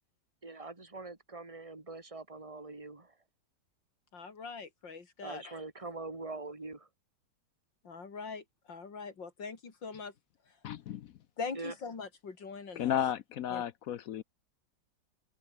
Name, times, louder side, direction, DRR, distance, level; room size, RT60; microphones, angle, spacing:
voice 1, 0.4-3.1 5.2-6.9 11.5-11.7, right 3 dB, 15° right, 3.0 m, -43 dB
voice 2, 4.1-5.6 7.8-10.1 11.4-12.9 13.5-13.6, left 5 dB, 80° left, 3.8 m, -42 dB
voice 3, 10.6-11.1 12.8-14.2, left 10 dB, 65° left, 0.9 m, -33 dB
omnidirectional pair, 2.0 m